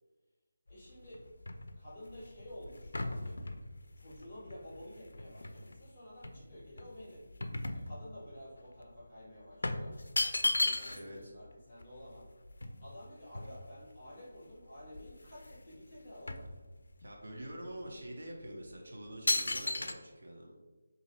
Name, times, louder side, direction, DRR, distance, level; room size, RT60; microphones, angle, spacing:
sound 1, 0.7-5.8 6.2-8.4 8.7-8.9 9.6-11.2 11.5-11.6 11.8-14.0 14.5-14.6 14.9-15.6 15.9-17.1 17.7-17.9 18.5-18.7 19.3-19.9, left 2 dB, 80° left, 0.4 m, -36 dB
voice 1, 0.7-1.2 1.7-3.4 4.0-7.2 7.7-10.0 10.4-12.3 12.8-16.5, left 1 dB, 15° left, -7 dB, 1.5 m, -51 dB
voice 2, 10.9-11.3 17.0-20.5, right 1 dB, 55° right, 0 dB, 0.7 m, -46 dB
3.0 x 2.7 x 4.0 m, 1.2 s
figure-of-eight pair, 175°, 0 cm